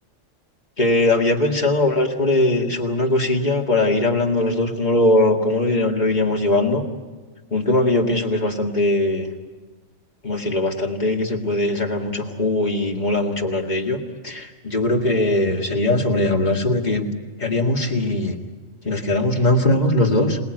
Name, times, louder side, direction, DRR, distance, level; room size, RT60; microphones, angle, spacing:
voice 1, 0.8-6.8 7.5-9.3 10.2-17.1 17.4-18.4 18.8-20.4, left 1 dB, 35° left, 1 dB, 2.3 m, -20 dB
27.0 x 18.5 x 9.3 m, 1.3 s
omnidirectional pair, 1.3 m